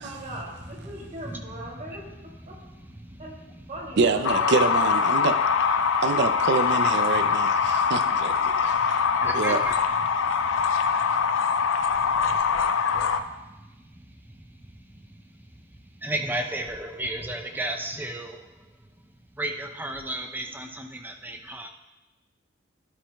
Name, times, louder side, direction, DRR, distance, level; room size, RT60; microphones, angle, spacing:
voice 1, 0.0-2.1 2.5-2.6 3.2-3.3 3.7-4.7, right 1 dB, 40° right, -3 dB, 2.7 m, -39 dB
voice 2, 1.3-2.0 3.0-3.2 5.8-6.0 7.1-7.4 7.6-7.8 8.4-9.7 10.1-10.4 10.8-13.2 13.6-14.4 14.9-15.0 16.0-18.4 19.3-21.7, right 1 dB, 10° right, 4 dB, 0.6 m, -35 dB
voice 3, 4.0-5.4 6.0-9.1 9.3-9.6, right 4 dB, 60° right, 10 dB, 0.5 m, -26 dB
sound 1, 4.2-13.2, left 6 dB, 75° left, 0.5 m, -23 dB
12.0 x 8.4 x 2.3 m, 1.0 s
head